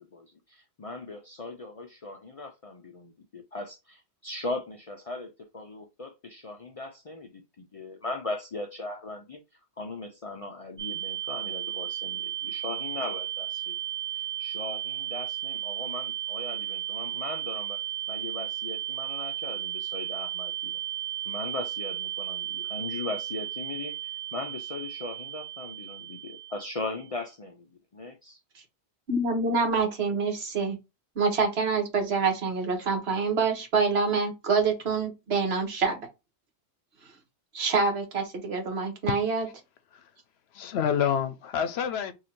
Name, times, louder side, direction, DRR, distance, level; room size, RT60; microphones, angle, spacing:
voice 1, 0.1-9.4 9.8-13.8 14.1-17.8 18.1-20.8 21.3-27.7 27.9-28.4, left 3 dB, 50° left, 0.4 m, -38 dB
sound 1, 10.8-27.1, right 12 dB, 25° right, 0.9 m, -34 dB
voice 2, 29.1-30.8 31.2-36.1 37.5-39.5, right 4 dB, 70° right, 1.3 m, -26 dB
voice 3, 40.5-42.1, left 8 dB, 75° left, 0.8 m, -28 dB
2.8 x 2.6 x 4.3 m
omnidirectional pair, 1.1 m